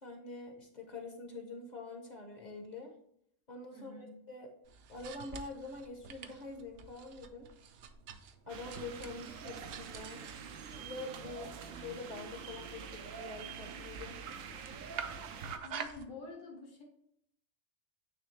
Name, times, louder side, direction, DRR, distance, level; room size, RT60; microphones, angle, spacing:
voice 1, 0.0-3.0 3.5-4.5 4.9-7.5 8.5-10.2 10.7-14.2, left 3 dB, 40° left, 3 dB, 0.8 m, -45 dB
voice 2, 3.7-4.1 15.6-16.8, left 3 dB, 75° left, 0 dB, 1.7 m, -48 dB
sound 1, 4.6-16.0, right 6 dB, 65° right, 0.7 m, -49 dB
sound 2, 8.5-15.6, right 6 dB, 85° right, 1.0 m, -46 dB
9.2 x 3.2 x 3.2 m, 0.70 s
omnidirectional pair, 1.4 m